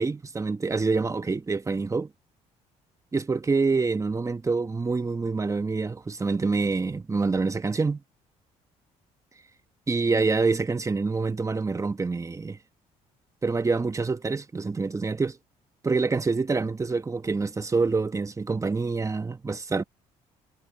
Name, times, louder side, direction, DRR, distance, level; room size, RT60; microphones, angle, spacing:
voice 1, 0.0-2.1 3.1-8.0 9.9-12.6 13.4-15.4 15.8-19.8, right 4 dB, 20° right, 1.2 m, -26 dB
supercardioid pair, 85°, 15 cm